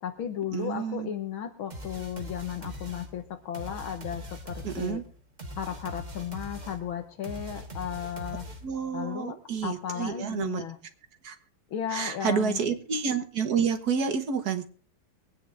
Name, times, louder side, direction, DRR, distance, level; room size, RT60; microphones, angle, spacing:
voice 1, 0.0-5.0 5.6-8.5 8.9-9.3 9.6-10.8 11.7-12.6, left 9 dB, 70° left, 7 dB, 1.9 m, -35 dB
voice 2, 0.5-1.1 4.6-5.0 8.6-10.6 11.2-11.4 11.9-14.6, right 6 dB, 50° right, 6 dB, 1.7 m, -29 dB
sound 1, 1.7-8.9, equal, 25° right, 1.3 m, -41 dB
23.0 x 9.1 x 3.5 m, 0.42 s
omnidirectional pair, 2.4 m